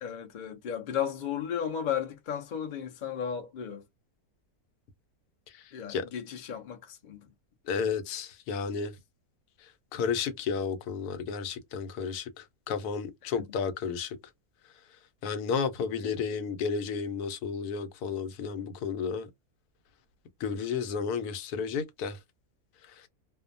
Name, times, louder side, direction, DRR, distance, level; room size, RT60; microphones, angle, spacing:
voice 1, 0.0-3.8 5.7-7.3 13.2-13.6 16.0-16.1, left 8 dB, 55° left, 0.5 m, -35 dB
voice 2, 7.7-8.9 9.9-14.2 15.2-19.3 20.4-22.2, left 6 dB, 80° left, 1.1 m, -32 dB
2.6 x 2.1 x 2.5 m
omnidirectional pair, 1.6 m